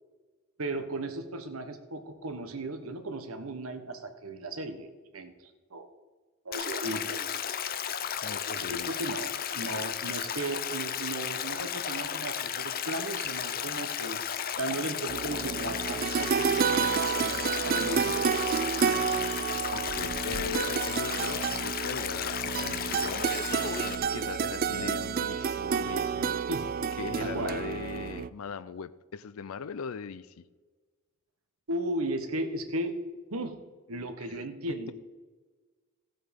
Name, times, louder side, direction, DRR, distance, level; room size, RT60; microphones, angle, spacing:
voice 1, 0.6-5.3 5.7-5.9 6.4-7.4 8.4-14.2 14.6-18.6 26.5-26.7 27.2-27.5 31.7-33.0 33.3-33.6 33.9-34.9, right 1 dB, 90° right, 8 dB, 1.3 m, -36 dB
Stream, 6.5-24.0, left 8 dB, 45° left, 0.7 m, -34 dB
voice 2, 8.2-8.9 19.7-23.3 24.1-26.3 27.0-30.4, left 6 dB, 85° left, 15 dB, 0.5 m, -39 dB
sound 1, 15.1-28.3, right 6 dB, 45° right, 0.4 m, -30 dB
15.0 x 7.7 x 5.3 m, 1.4 s
head